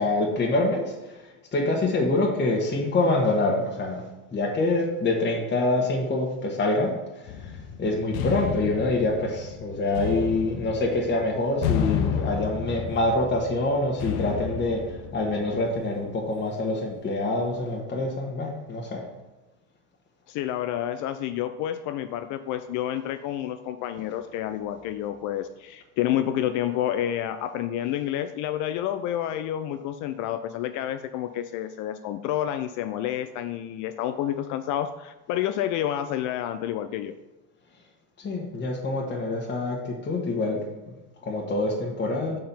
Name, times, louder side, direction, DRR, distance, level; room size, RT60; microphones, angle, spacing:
voice 1, 0.0-4.0 4.3-7.5 7.8-19.0 38.2-40.6 40.9-41.0 41.2-42.4, left 2 dB, 20° left, -2 dB, 1.4 m, -26 dB
sound 1, 7.3-15.9, left 7 dB, 65° left, 1.0 m, -31 dB
voice 2, 20.3-37.1, left 11 dB, 40° left, 10 dB, 0.4 m, -29 dB
5.5 x 4.4 x 5.4 m, 1.1 s
hypercardioid pair, 85°, 48 cm